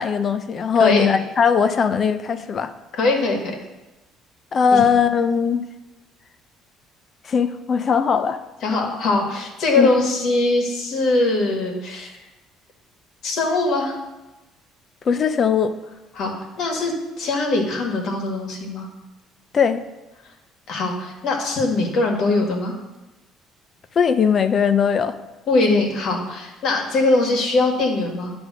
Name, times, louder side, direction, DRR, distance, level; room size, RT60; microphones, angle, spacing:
voice 1, 0.0-2.7 4.5-5.6 7.2-8.4 9.8-9.9 15.0-15.7 19.5-19.8 24.0-25.2, left 6 dB, 40° left, 11 dB, 0.7 m, -19 dB
voice 2, 3.0-3.5 4.7-4.8 8.6-12.2 13.2-14.0 16.2-18.9 20.7-22.8 25.5-28.3, left 2 dB, 65° left, 2 dB, 2.0 m, -21 dB
10.5 x 3.5 x 6.2 m, 1.1 s
cardioid pair, 95°, 0 cm